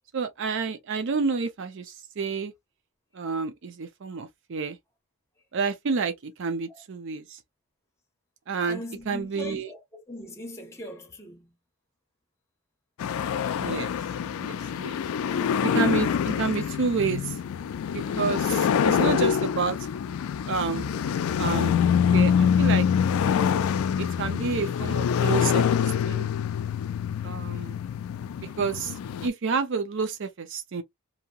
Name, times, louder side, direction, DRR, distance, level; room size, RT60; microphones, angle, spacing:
voice 1, 0.1-2.5 3.1-4.8 5.5-7.4 8.5-8.8 9.1-9.7 13.6-13.9 14.4-15.0 15.6-17.4 17.9-19.8 20.5-20.9 21.4-21.9 22.1-22.9 24.0-25.6 26.0-26.3 27.2-27.8 28.4-28.9 29.2-30.8, right 5 dB, 60° right, 0.5 m, -29 dB
voice 2, 8.7-11.5, left 1 dB, 15° left, 0.8 m, -41 dB
sound 1, 13.0-29.3, left 7 dB, 75° left, 0.3 m, -25 dB
2.8 x 2.7 x 2.3 m
head